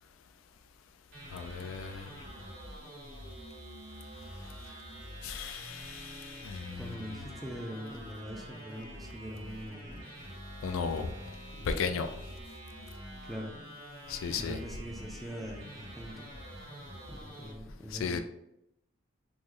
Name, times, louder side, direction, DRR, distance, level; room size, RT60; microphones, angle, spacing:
sound 1, 1.1-17.5, equal, 85° right, 1.2 m, -46 dB
voice 1, 1.3-2.1 5.2-7.0 10.6-11.1 11.6-12.1 14.1-14.6 17.9-18.2, left 5 dB, 85° left, 8 dB, 0.3 m, -35 dB
voice 2, 6.8-10.1 11.5-11.7 13.2-13.5 14.4-16.3 17.1-18.2, equal, ahead, 0 dB, 0.3 m, -43 dB
3.0 x 2.0 x 3.6 m, 0.80 s
head